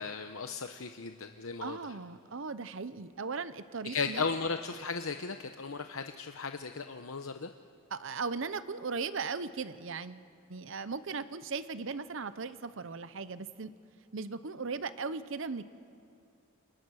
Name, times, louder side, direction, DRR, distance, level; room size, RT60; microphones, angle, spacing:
voice 1, 0.0-2.0 3.8-7.5, left 5 dB, 75° left, 7 dB, 0.9 m, -36 dB
voice 2, 1.6-4.3 7.9-13.7 14.1-15.6, right 4 dB, 60° right, 13 dB, 0.8 m, -38 dB
30.0 x 26.5 x 6.4 m, 2.6 s
head